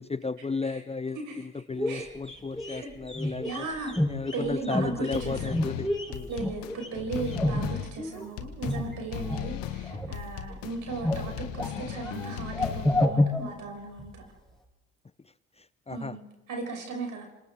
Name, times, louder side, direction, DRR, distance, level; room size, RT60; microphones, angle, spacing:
voice 1, 0.0-3.7 4.1-6.3 15.9-16.2, left 4 dB, 20° left, 16 dB, 0.6 m, -34 dB
voice 2, 1.1-1.5 1.9-2.1 2.6-2.9 3.2-3.9 4.3-5.5 6.3-14.2 15.9-17.3, right 4 dB, 70° right, 1 dB, 6.6 m, -37 dB
sound 1, 1.7-8.3 8.6-9.5 9.8-10.5 10.8-14.2 14.4-14.5, left 1 dB, ahead, 7.1 m, -30 dB
sound 2, 5.1-13.1, left 10 dB, 85° left, 1.6 m, -37 dB
27.0 x 26.0 x 3.7 m, 1.0 s
hypercardioid pair, 50°, 33 cm